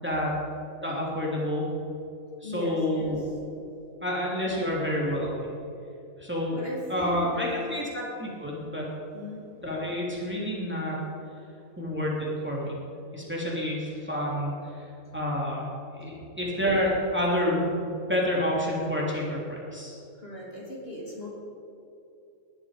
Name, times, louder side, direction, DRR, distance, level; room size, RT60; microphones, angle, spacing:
voice 1, 0.0-0.4 0.8-1.7 2.4-3.2 4.0-5.3 6.2-6.6 6.9-8.9 9.6-11.0 11.8-12.8 13.1-14.8 15.1-15.7 15.9-20.0, equal, 5° right, -4 dB, 3.1 m, -29 dB
voice 2, 2.4-3.3 6.5-7.8 9.1-9.4 20.2-21.3, left 2 dB, 40° left, -4 dB, 3.3 m, -38 dB
18.5 x 12.0 x 5.1 m, 2.8 s
omnidirectional pair, 1.5 m